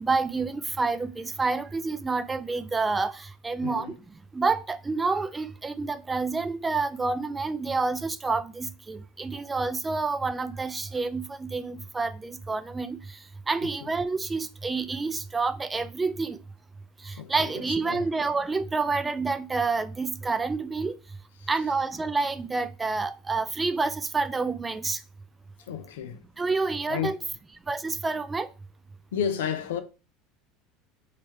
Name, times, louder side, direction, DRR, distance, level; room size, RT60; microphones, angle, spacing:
voice 1, 0.0-3.1 3.4-3.9 4.3-13.0 13.5-16.4 17.1-21.0 21.5-25.0 26.4-27.2 27.7-28.5, right 4 dB, 20° right, 0.4 m, -28 dB
voice 2, 3.6-4.0 13.6-13.7 17.1-18.1 21.4-21.5 25.6-26.2 26.9-27.2 29.1-29.8, left 8 dB, 80° left, 0.5 m, -32 dB
3.1 x 2.4 x 4.3 m
hypercardioid pair, 90°, 0 cm